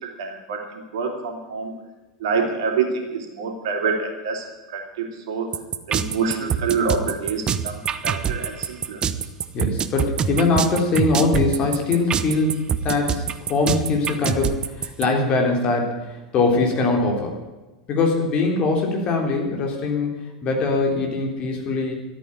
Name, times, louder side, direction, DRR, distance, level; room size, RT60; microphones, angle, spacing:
voice 1, 0.0-1.7 2.2-5.5 5.9-9.0, right 5 dB, 60° right, 2 dB, 3.3 m, -27 dB
sound 1, 5.5-15.0, right 8 dB, 25° right, 0.9 m, -24 dB
voice 2, 9.5-17.4 17.9-21.9, left 3 dB, 35° left, 1 dB, 3.6 m, -22 dB
13.5 x 8.8 x 9.7 m, 1.1 s
figure-of-eight pair, 85°, 3 cm